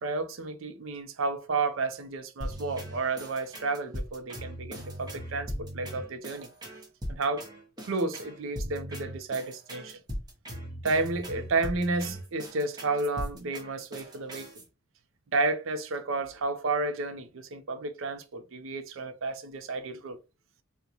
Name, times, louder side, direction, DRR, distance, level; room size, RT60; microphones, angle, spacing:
voice 1, 0.0-6.5 7.1-7.5 7.8-10.0 10.8-14.5 15.3-20.2, right 3 dB, 80° right, 0.5 m, -31 dB
sound 1, 2.4-14.6, equal, 20° right, 0.7 m, -39 dB
3.7 x 2.1 x 2.9 m
head